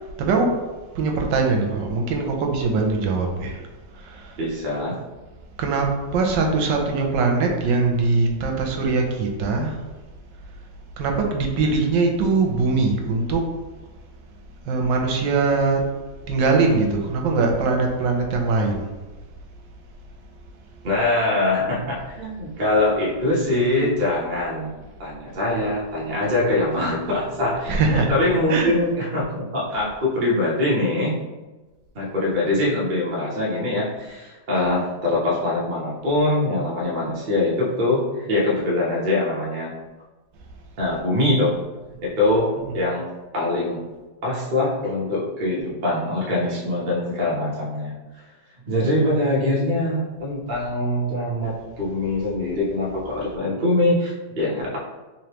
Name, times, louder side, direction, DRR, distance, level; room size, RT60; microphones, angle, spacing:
voice 1, 0.2-0.5 0.9-3.6 4.0-4.3 5.6-9.8 11.0-13.5 14.7-15.9 16.3-18.9 27.7-28.1 28.5-28.8 29.7-29.9 42.6-42.8, right 3 dB, 75° right, 2 dB, 1.3 m, -22 dB
voice 2, 4.4-5.0 20.8-24.7 25.0-31.2 31.9-39.7 40.8-41.6 42.0-43.9 44.2-47.9 48.7-54.8, left 2 dB, 50° right, -6 dB, 0.6 m, -23 dB
3.6 x 3.2 x 2.9 m, 1.2 s
omnidirectional pair, 2.1 m